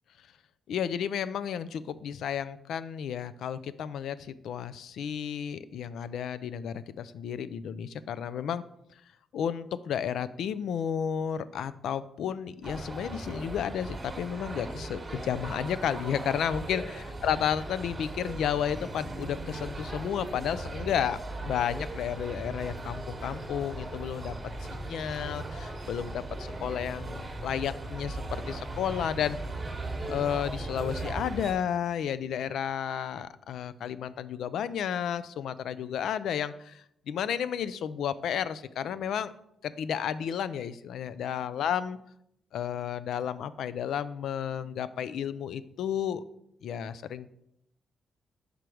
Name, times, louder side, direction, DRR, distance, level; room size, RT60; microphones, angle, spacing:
voice 1, 0.7-8.6 9.3-24.3 24.7-29.4 30.0-39.3 39.6-42.0 42.5-46.2 46.6-47.3, left 8 dB, 80° left, 15 dB, 0.3 m, -32 dB
sound 1, 12.6-31.5, right 2 dB, 25° right, 1.1 m, -38 dB
5.1 x 4.5 x 4.8 m, 0.75 s
cardioid pair, 115°, 0 cm